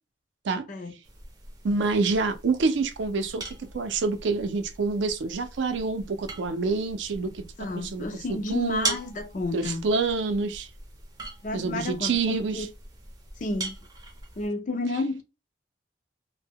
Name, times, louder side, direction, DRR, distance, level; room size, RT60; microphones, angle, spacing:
sound 1, 1.0-14.5, right 3 dB, 20° right, 0.5 m, -40 dB
voice 1, 1.6-3.5 3.7-7.4 7.8-8.9 9.5-10.7 11.5-12.7, right 4 dB, 75° right, 0.4 m, -27 dB
voice 2, 7.6-9.9 11.4-12.7 13.4-13.8 14.4-15.2, left 2 dB, 40° left, 0.4 m, -31 dB
2.1 x 2.1 x 3.4 m
head